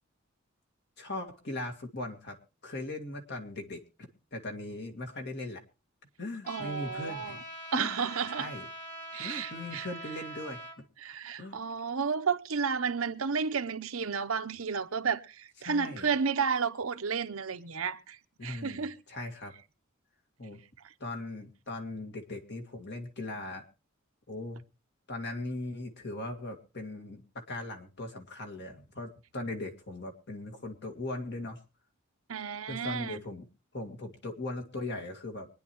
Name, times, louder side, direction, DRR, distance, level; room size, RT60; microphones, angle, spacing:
voice 1, 1.0-2.4 2.6-3.8 4.3-5.6 6.2-7.4 7.7-8.0 8.3-8.7 9.2-10.8 11.4-11.6 15.6-16.1 18.4-19.5 20.4-20.6 21.0-23.6 24.3-24.6 25.1-31.6 32.7-33.4 33.7-35.5, left 2 dB, 55° left, 2.0 m, -39 dB
Trumpet, 6.4-10.8, equal, 40° left, 3.2 m, -43 dB
voice 2, 6.5-7.4 7.7-8.5 9.1-9.9 11.0-19.0 32.3-33.2, right 6 dB, 90° right, 0.8 m, -32 dB
24.5 x 10.0 x 3.0 m
head